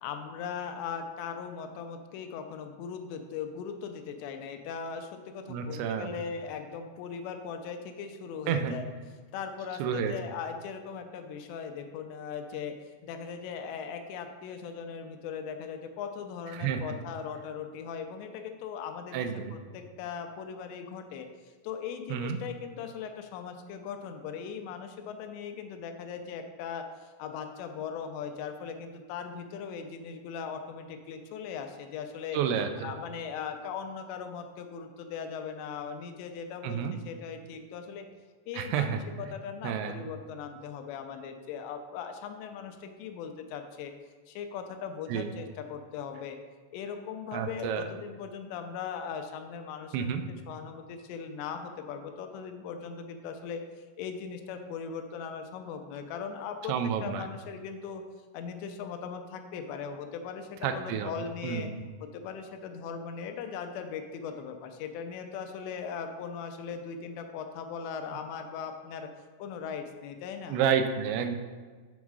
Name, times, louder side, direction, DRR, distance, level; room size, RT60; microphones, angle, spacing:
voice 1, 0.0-8.9 9.3-12.8 13.0-21.3 21.6-32.4 32.8-38.1 38.5-43.9 44.3-46.4 46.7-50.1 50.5-56.7 57.0-58.0 58.3-61.7 62.1-69.1 69.4-70.6, left 6 dB, 85° left, 6 dB, 2.7 m, -39 dB
voice 2, 5.5-6.2 8.5-8.8 9.8-10.2 16.5-16.8 19.1-19.5 22.1-22.4 32.3-32.9 36.6-37.0 38.5-39.0 39.6-40.1 45.1-45.3 47.3-47.9 49.9-50.2 56.7-57.3 60.6-61.1 61.4-61.8 70.5-71.4, right 7 dB, 85° right, 7 dB, 2.9 m, -30 dB
7.2 x 4.0 x 4.7 m, 1.5 s
omnidirectional pair, 5.1 m